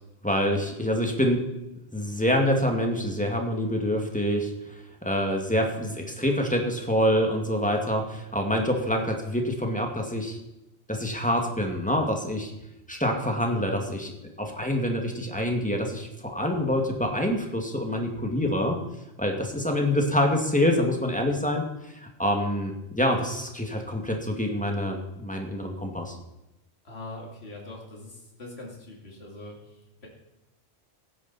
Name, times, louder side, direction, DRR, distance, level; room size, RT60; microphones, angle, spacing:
voice 1, 0.2-1.4 1.9-10.4 10.9-12.5 12.9-14.1 14.4-18.8 19.2-21.7 21.9-26.2, equal, 5° left, 2 dB, 2.0 m, -26 dB
voice 2, 26.8-30.1, left 2 dB, 65° left, -1 dB, 2.8 m, -42 dB
16.5 x 10.0 x 4.2 m, 0.92 s
omnidirectional pair, 1.2 m